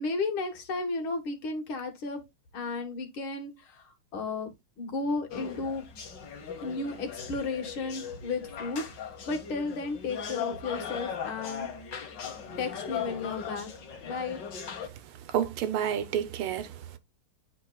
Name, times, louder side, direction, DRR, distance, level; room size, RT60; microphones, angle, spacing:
voice 1, 0.0-2.2 2.5-3.5 4.1-4.5 4.8-5.8 6.6-11.7 12.6-13.7 14.0-14.4, left 3 dB, 75° left, 2.2 m, -33 dB
sound 1, 5.3-14.9, left 7 dB, 60° left, 1.8 m, -39 dB
voice 2, 15.3-17.0, right 9 dB, 80° right, 1.7 m, -30 dB
10.0 x 4.4 x 2.3 m
omnidirectional pair, 2.4 m